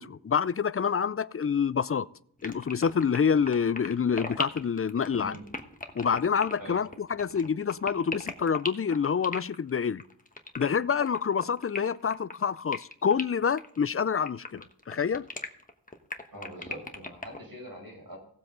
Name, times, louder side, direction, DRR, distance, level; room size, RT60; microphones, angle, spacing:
voice 1, 0.0-2.1 2.4-5.4 6.0-10.0 10.6-15.3, left 6 dB, 35° left, 0.4 m, -27 dB
sound 1, 2.4-17.4, left 2 dB, 20° left, 1.2 m, -38 dB
voice 2, 16.3-18.2, equal, 60° right, 6.0 m, -43 dB
17.0 x 7.7 x 3.8 m
wide cardioid pair, 50°, 40 cm